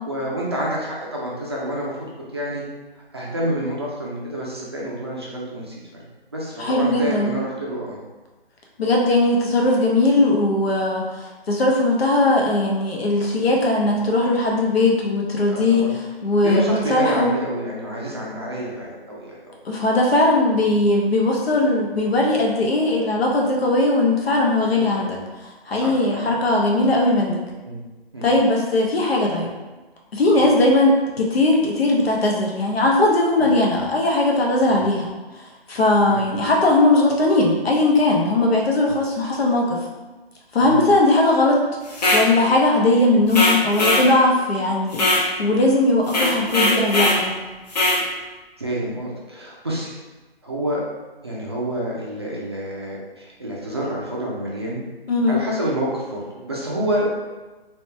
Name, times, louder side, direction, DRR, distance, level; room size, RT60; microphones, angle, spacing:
voice 1, 0.1-1.9 2.3-2.6 3.1-6.0 6.3-8.0 15.5-15.9 16.4-19.6 24.6-24.9 25.7-26.4 27.6-27.8 28.1-28.3 33.4-33.5 34.7-34.9 36.1-36.2 40.6-40.8 48.6-49.9 50.4-50.8 51.2-54.8 55.3-57.1, right 1 dB, 25° right, -5 dB, 0.4 m, -28 dB
voice 2, 6.6-7.3 8.8-17.3 19.6-25.2 25.4-27.4 28.2-29.5 30.1-35.1 35.3-39.8 40.5-41.6 42.1-47.3 55.1-55.4, left 2 dB, 75° left, -1 dB, 1.0 m, -19 dB
sound 1, 41.9-42.3 43.3-44.1 44.9-45.3 46.1-47.2 47.7-48.0, left 1 dB, 40° left, 0.8 m, -19 dB
3.0 x 3.0 x 3.3 m, 1.2 s
hypercardioid pair, 165°, 31 cm